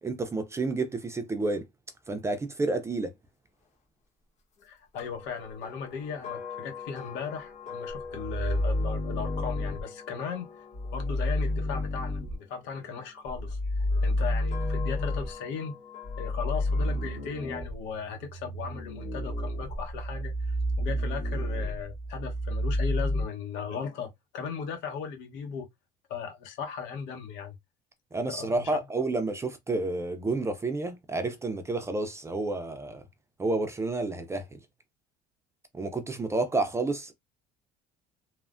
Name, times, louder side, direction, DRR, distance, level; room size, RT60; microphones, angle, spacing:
voice 1, 0.0-1.7 2.1-3.1 28.1-33.0 33.4-34.6 35.7-37.1, right 2 dB, 15° right, 0.4 m, -30 dB
voice 2, 4.6-10.7 10.9-15.7 16.2-25.7 26.1-27.5 28.3-28.8, left 6 dB, 75° left, 0.9 m, -37 dB
sound 1, 4.9-13.1 13.8-17.3, left 6 dB, 40° left, 1.1 m, -44 dB
sound 2, 7.9-9.8 10.7-12.4 13.3-15.3 16.0-23.2, left 1 dB, 55° left, 1.4 m, -30 dB
3.2 x 2.0 x 2.4 m
cardioid pair, 135°, 19 cm